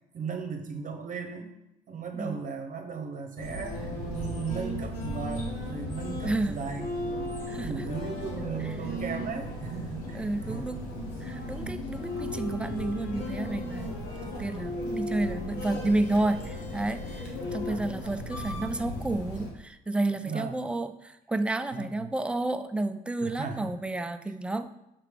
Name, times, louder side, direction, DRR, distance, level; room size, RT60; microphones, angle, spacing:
voice 1, 0.1-1.5 1.9-10.8 20.2-20.7 21.7-22.1 23.2-23.7, right 5 dB, 40° right, 5 dB, 1.0 m, -37 dB
sound 1, 3.4-19.5, left 1 dB, 75° left, 1.3 m, -35 dB
voice 2, 6.2-6.6 7.5-7.8 10.1-10.8 11.2-13.9 14.4-24.7, right 2 dB, 5° right, 9 dB, 0.4 m, -31 dB
5.9 x 3.2 x 4.9 m, 0.90 s
hypercardioid pair, 60°, 20 cm